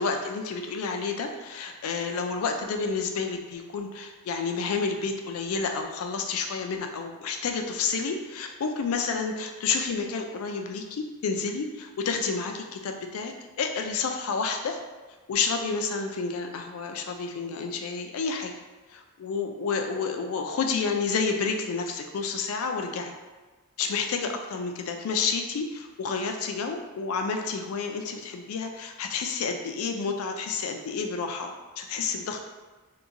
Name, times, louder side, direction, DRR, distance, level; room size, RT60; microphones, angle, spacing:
voice 1, 0.0-13.3 13.6-14.8 15.3-18.5 18.9-23.1 23.8-32.4, left 5 dB, 80° left, 4 dB, 0.3 m, -30 dB
2.8 x 2.2 x 2.5 m, 1.3 s
head